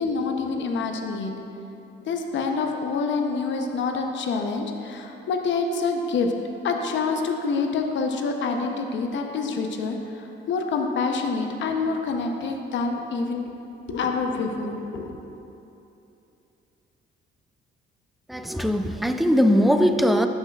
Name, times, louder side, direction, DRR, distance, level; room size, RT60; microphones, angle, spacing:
voice 1, 0.0-1.3 2.1-6.3 6.6-13.5 13.9-15.2, left 4 dB, 70° left, 3 dB, 0.7 m, -27 dB
voice 2, 18.3-20.3, equal, ahead, 6 dB, 0.4 m, -20 dB
12.0 x 5.5 x 2.4 m, 2.9 s
cardioid pair, 90°, 20 cm